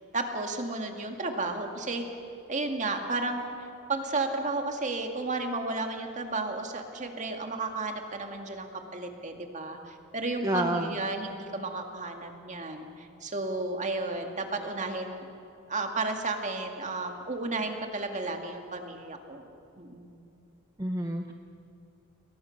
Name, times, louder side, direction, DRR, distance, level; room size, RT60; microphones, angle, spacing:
voice 1, 0.0-2.1 2.5-3.4 3.9-15.3 15.7-19.4 19.8-20.2, right 3 dB, 35° right, 4 dB, 2.3 m, -33 dB
voice 2, 10.4-11.0 20.8-21.3, right 1 dB, 15° right, 4 dB, 0.9 m, -29 dB
29.0 x 22.5 x 6.7 m, 2.7 s
head